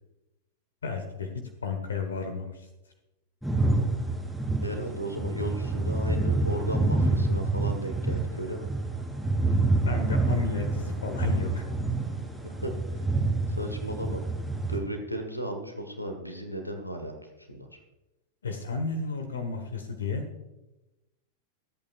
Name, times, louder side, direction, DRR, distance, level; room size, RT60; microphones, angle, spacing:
voice 1, 0.8-1.3 1.6-2.7 9.8-11.7 18.4-20.2, left 4 dB, 70° left, 7 dB, 1.4 m, -32 dB
sound 1, 3.4-14.8, right 2 dB, ahead, 4.5 m, -27 dB
voice 2, 4.6-8.7 12.4-13.0 13.5-14.2 14.7-17.8, equal, 90° left, 6 dB, 1.5 m, -35 dB
23.5 x 8.7 x 2.5 m, 1.0 s
figure-of-eight pair, 90°, 0 cm